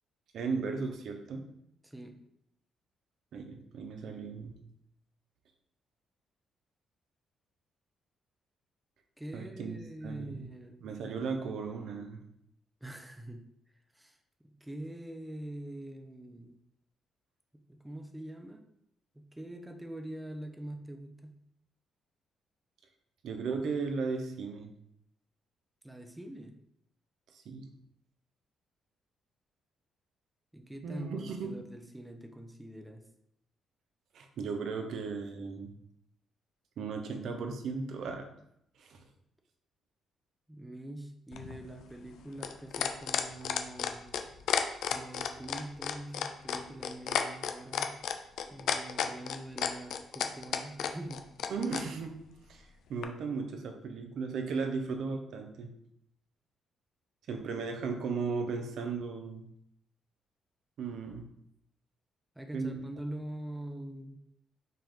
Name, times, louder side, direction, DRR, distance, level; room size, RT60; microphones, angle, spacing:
voice 1, 0.3-1.5 3.3-4.6 9.3-10.5 10.8-12.2 23.2-24.7 27.3-27.7 30.8-31.6 34.1-35.7 36.8-38.3 38.8-39.0 51.5-52.2 52.5-52.6 52.9-55.7 57.3-59.5 60.8-61.2 62.5-62.8, right 4 dB, 70° right, 5 dB, 0.7 m, -36 dB
voice 2, 1.8-2.2 9.2-10.8 12.8-13.4 13.9-16.6 17.5-18.6 19.1-21.4 25.8-26.6 30.5-33.1 40.5-44.1 44.9-47.9 48.5-51.3 62.4-64.2, right 1 dB, 10° right, 5 dB, 0.6 m, -44 dB
sound 1, 41.3-51.8 53.0-53.1, left 9 dB, 80° left, 0.4 m, -32 dB
5.5 x 2.5 x 3.6 m, 0.75 s
cardioid pair, 90°, 0 cm